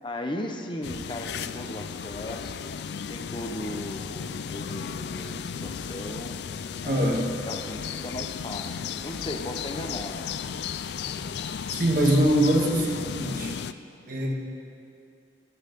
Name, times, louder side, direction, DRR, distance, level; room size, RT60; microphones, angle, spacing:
voice 1, 0.0-6.3 6.8-7.1 7.4-10.2, left 1 dB, 25° left, 3 dB, 0.8 m, -37 dB
sound 1, 0.8-13.7, left 7 dB, 60° left, 0.4 m, -35 dB
voice 2, 6.8-7.3 11.7-13.5 14.1-14.3, right 1 dB, 45° right, 0 dB, 1.7 m, -23 dB
12.5 x 12.0 x 5.3 m, 2.4 s
head